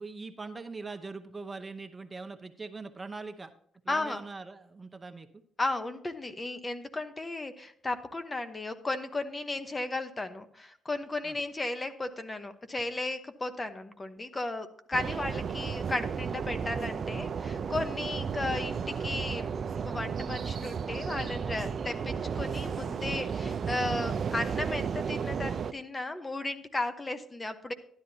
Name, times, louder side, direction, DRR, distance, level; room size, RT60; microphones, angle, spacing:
voice 1, 0.0-3.5 3.8-5.3 11.2-11.3, right 3 dB, 25° right, 7 dB, 0.8 m, -42 dB
voice 2, 3.9-4.2 5.6-19.5 19.7-27.7, left 2 dB, 25° left, 9 dB, 0.9 m, -35 dB
sound 1, 14.9-25.7, right 6 dB, 50° right, 0.5 m, -33 dB
12.5 x 10.5 x 2.8 m, 0.63 s
cardioid pair, 90°, 0 cm